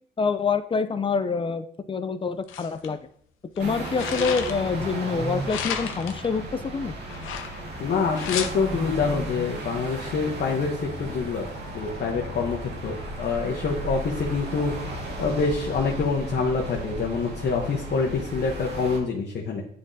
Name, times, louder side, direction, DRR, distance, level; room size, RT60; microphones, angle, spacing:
voice 1, 0.2-3.0 3.6-7.0, left 5 dB, 25° left, 11 dB, 0.4 m, -26 dB
sound 1, 2.5-2.9 3.6-4.8 5.5-6.3 7.1-7.8 8.1-8.5, left 8 dB, 90° left, 0.7 m, -33 dB
sound 2, 3.6-19.0, right 1 dB, 60° right, 1.7 m, -35 dB
voice 2, 7.8-11.5 11.7-14.8 15.2-19.6, left 4 dB, 55° left, -1 dB, 1.0 m, -26 dB
9.6 x 3.7 x 2.7 m, 0.65 s
cardioid pair, 90°, 20 cm